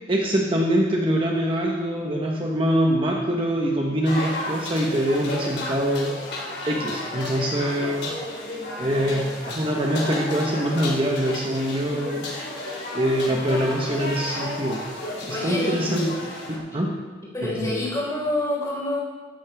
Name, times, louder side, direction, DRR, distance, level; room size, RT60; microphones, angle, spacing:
voice 1, 0.1-6.2 6.6-8.2 8.8-12.3 12.9-16.1 16.5-17.0 17.4-17.7, equal, 30° right, -1 dB, 1.2 m, -24 dB
sound 1, 4.1-16.6, left 1 dB, 60° left, 3.4 m, -32 dB
voice 2, 15.3-15.8 17.3-19.0, left 1 dB, 20° left, -6 dB, 4.8 m, -27 dB
16.0 x 13.0 x 3.6 m, 1.5 s
head